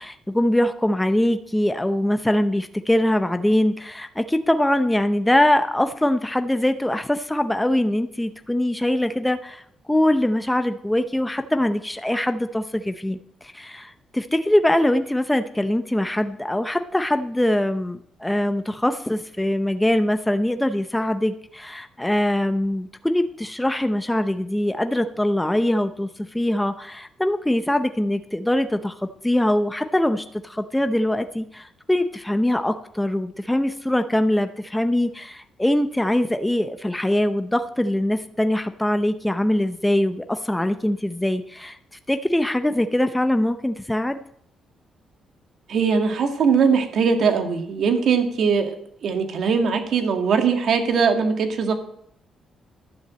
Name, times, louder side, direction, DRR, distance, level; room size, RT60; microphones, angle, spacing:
voice 1, 0.0-9.6 9.9-29.0 29.2-41.8 42.1-44.2, left 1 dB, 5° left, 8 dB, 0.7 m, -22 dB
voice 2, 45.7-48.8 49.0-51.7, right 5 dB, 65° right, 5 dB, 1.9 m, -20 dB
11.5 x 7.1 x 7.5 m, 0.69 s
cardioid pair, 105°, 0 cm